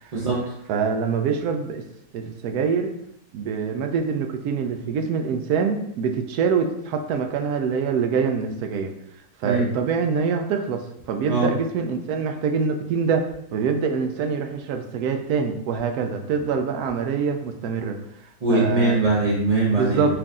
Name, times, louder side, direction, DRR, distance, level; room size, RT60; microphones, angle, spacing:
voice 1, 0.1-0.5 9.4-9.7 11.3-11.5 18.4-20.1, right 2 dB, 40° right, -5 dB, 0.5 m, -21 dB
voice 2, 0.7-1.8 2.1-2.9 3.3-8.9 9.4-10.8 11.1-18.0 18.5-19.0 19.7-20.1, right 6 dB, 80° right, 5 dB, 1.1 m, -25 dB
4.7 x 2.6 x 3.6 m, 0.77 s
omnidirectional pair, 1.6 m